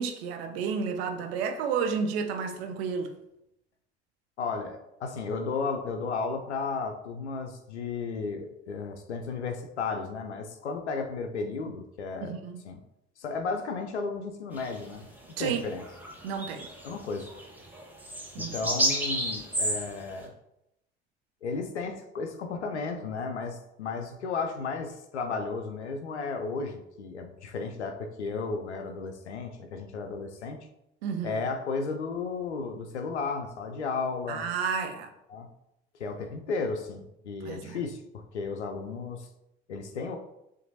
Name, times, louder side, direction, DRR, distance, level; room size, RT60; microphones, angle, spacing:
voice 1, 0.0-3.1 12.2-12.6 15.4-15.6 16.2-16.7 18.3-18.7 31.0-31.4 34.3-35.1 37.4-37.8, right 6 dB, 65° right, 0.7 m, -31 dB
voice 2, 4.4-12.4 12.6-12.8 13.2-15.1 15.4-15.8 16.8-17.3 18.4-20.3 21.4-30.7 31.2-34.5 35.3-35.5 36.0-39.3 39.7-40.2, left 4 dB, 85° left, 0.5 m, -34 dB
sound 1, 14.6-14.7 15.4-15.5 15.8-20.1, right 1 dB, 5° right, 1.1 m, -31 dB
6.9 x 2.6 x 2.7 m
figure-of-eight pair, 55°, 33 cm